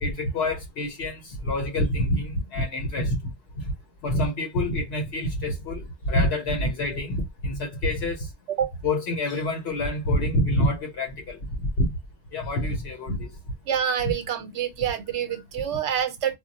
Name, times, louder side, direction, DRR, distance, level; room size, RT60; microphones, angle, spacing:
voice 1, 0.0-3.2 3.5-3.7 4.0-8.3 8.8-11.9 12.3-13.3 14.0-14.1 15.3-15.4, left 1 dB, 70° left, 0.9 m, -27 dB
voice 2, 13.7-16.3, right 9 dB, 85° right, 0.9 m, -27 dB
2.2 x 2.0 x 3.8 m
omnidirectional pair, 1.1 m